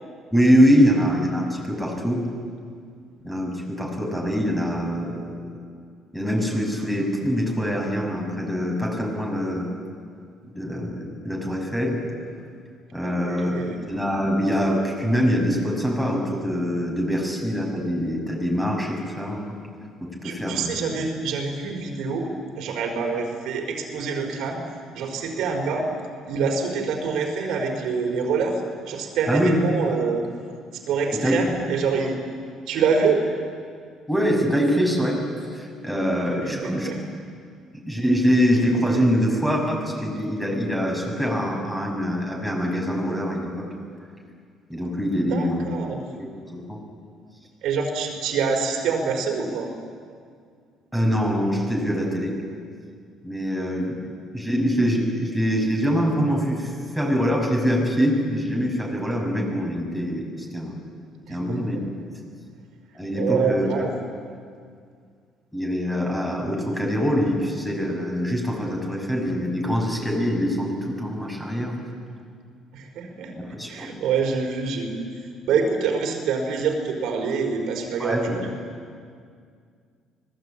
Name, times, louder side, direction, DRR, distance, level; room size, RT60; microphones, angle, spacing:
voice 1, 0.3-2.2 3.2-5.6 6.1-9.7 10.4-12.0 12.9-19.6 20.0-20.7 29.3-29.6 31.1-31.6 34.1-35.2 35.5-36.9 37.7-43.7 44.7-45.6 46.2-46.8 50.9-52.4 53.2-54.0 54.3-60.8 61.3-61.8 62.9-63.7 65.5-71.9 73.4-74.0 78.0-78.4, equal, 5° left, 0 dB, 6.5 m, -24 dB
voice 2, 13.0-13.8 20.2-22.3 22.6-24.6 24.9-25.9 26.3-28.6 28.9-30.3 30.7-32.2 32.7-33.2 36.4-37.0 45.1-46.0 47.6-49.7 61.3-61.8 63.1-63.9 72.7-78.5, right 5 dB, 75° right, 2 dB, 4.6 m, -26 dB
25.5 x 20.0 x 8.8 m, 2.1 s
cardioid pair, 110°, 0 cm